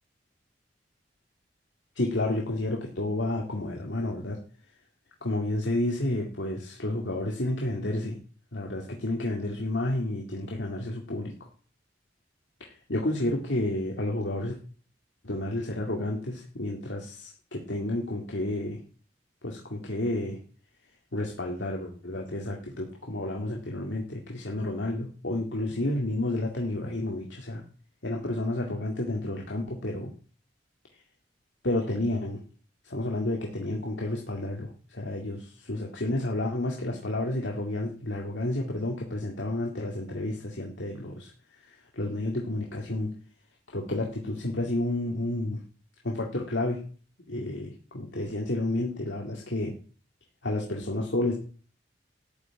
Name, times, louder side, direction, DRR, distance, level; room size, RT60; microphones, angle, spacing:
voice 1, 2.0-4.4 5.2-8.2 8.5-11.3 12.6-14.6 15.2-18.8 19.4-20.4 21.1-27.6 28.0-30.1 30.9-31.0 31.6-32.4 32.8-41.3 41.6-43.1 43.7-45.6 46.0-46.8 47.3-49.7 50.4-51.3, left 1 dB, 80° left, 0 dB, 2.1 m, -31 dB
13.0 x 6.0 x 8.9 m, 0.41 s
head